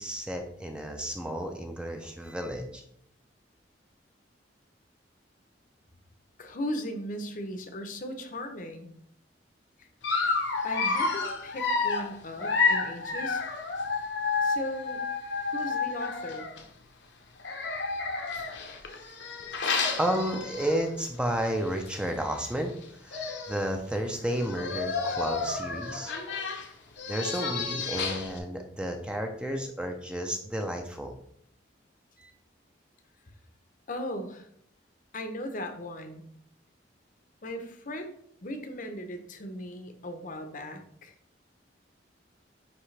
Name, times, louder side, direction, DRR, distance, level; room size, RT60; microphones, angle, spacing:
voice 1, 0.0-2.8 20.0-26.1 27.1-31.1 32.2-32.3, equal, 5° right, 3 dB, 0.5 m, -32 dB
voice 2, 6.4-8.9 9.8-9.9 10.6-13.5 14.4-15.0 15.5-16.5 33.9-34.5 35.1-36.3 37.4-38.1 38.4-41.1, left 1 dB, 45° left, 6 dB, 0.8 m, -37 dB
Dog, 10.0-16.6 17.4-21.0 21.4-21.6 21.9-22.0 22.8-22.9 23.1-23.7 24.3-28.4, left 4 dB, 70° left, 0.9 m, -30 dB
9.6 x 3.3 x 3.3 m, 0.67 s
head